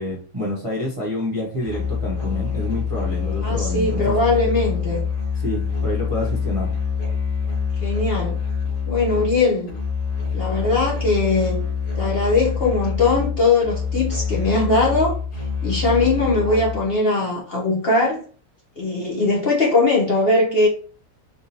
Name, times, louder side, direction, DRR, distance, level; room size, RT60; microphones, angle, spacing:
voice 1, 0.0-4.1 5.4-6.7, left 1 dB, 30° right, 0.7 m, -28 dB
Musical instrument, 1.6-16.9, left 5 dB, 85° left, 1.9 m, -25 dB
voice 2, 3.4-5.0 7.8-8.4 8.9-9.7 10.3-11.6 12.0-15.1 15.6-18.2 18.8-20.7, left 3 dB, 50° left, 0.9 m, -20 dB
3.6 x 2.7 x 2.8 m
omnidirectional pair, 1.6 m